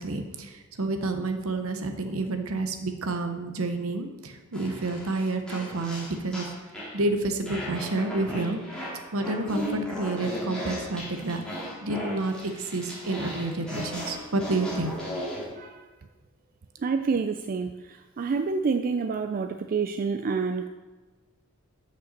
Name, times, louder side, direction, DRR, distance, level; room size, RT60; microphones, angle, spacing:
voice 1, 0.0-6.5 6.9-8.6 9.1-11.4 11.8-15.0, right 2 dB, 65° right, 6 dB, 0.8 m, -29 dB
sound 1, 4.5-7.0 7.5-15.5, equal, 5° left, 2.2 m, -36 dB
voice 2, 16.8-20.7, right 5 dB, 40° right, 7 dB, 0.3 m, -28 dB
6.6 x 5.3 x 6.5 m, 1.2 s
head